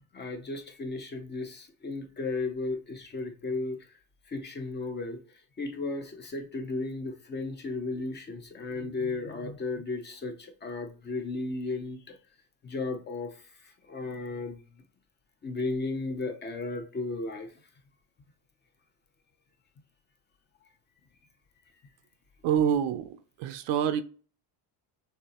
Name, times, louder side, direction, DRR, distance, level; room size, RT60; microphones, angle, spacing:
voice 1, 0.1-3.8 4.3-5.2 5.6-12.2 12.6-13.3 13.9-14.6 15.4-17.5 22.6-22.7, left 3 dB, 25° left, 0.6 m, -34 dB
voice 2, 22.4-23.1 23.4-24.0, right 8 dB, 70° right, 0.7 m, -26 dB
6.7 x 2.7 x 2.9 m
cardioid pair, 150°, 45 cm